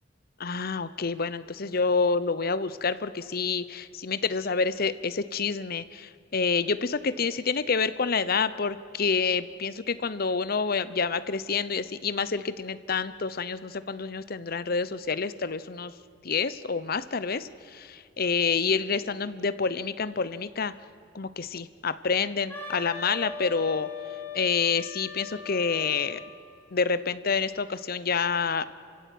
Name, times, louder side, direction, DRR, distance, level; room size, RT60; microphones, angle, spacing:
voice 1, 0.4-15.9 16.2-20.7 21.1-23.9 24.3-26.2 26.7-28.6, left 5 dB, 50° left, 15 dB, 0.8 m, -28 dB
Wind instrument woodwind instrument, 22.5-26.3, left 5 dB, 10° left, 4.1 m, -39 dB
27.5 x 16.0 x 9.4 m, 2.5 s
head